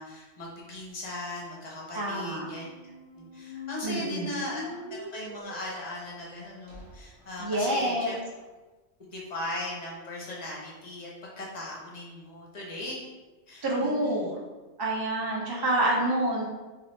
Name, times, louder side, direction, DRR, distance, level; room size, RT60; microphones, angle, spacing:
voice 1, 0.0-2.7 3.2-8.1 9.1-11.1 11.4-13.0 13.5-14.3, left 1 dB, 40° left, -4 dB, 0.8 m, -38 dB
voice 2, 1.9-2.4 3.8-4.3 7.4-8.2 13.6-14.4 14.8-16.5, right 1 dB, 35° right, -3 dB, 0.3 m, -27 dB
sound 1, 2.4-8.3, left 1 dB, 75° right, 1.2 m, -43 dB
3.0 x 2.6 x 3.1 m, 1.2 s
omnidirectional pair, 1.2 m